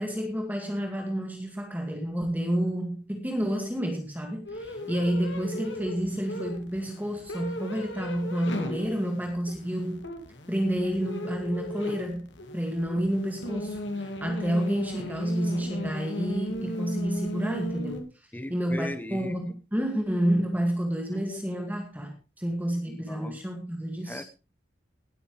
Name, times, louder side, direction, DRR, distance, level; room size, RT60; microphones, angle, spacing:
voice 1, 0.0-10.0 10.5-12.2 12.5-18.1 18.5-24.2, equal, 10° right, 2.0 m, -29 dB
sound 1, 4.5-18.0, left 1 dB, 90° left, 2.3 m, -36 dB
voice 2, 18.3-19.6 21.1-21.7 22.9-23.4 24.1-24.2, left 1 dB, 10° left, 1.0 m, -39 dB
19.5 x 8.9 x 3.2 m
head